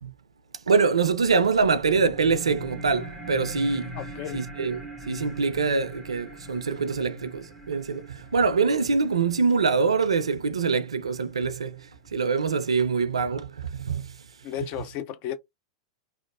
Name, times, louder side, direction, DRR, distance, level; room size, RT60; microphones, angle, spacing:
voice 1, 0.7-4.0 4.3-4.8 5.1-14.2, right 4 dB, 75° right, 0.4 m, -24 dB
sound 1, 1.4-12.3, equal, 5° left, 1.0 m, -42 dB
voice 2, 4.0-4.4 14.4-15.4, left 10 dB, 40° left, 0.4 m, -33 dB
3.0 x 2.0 x 2.3 m
figure-of-eight pair, 95°, 3 cm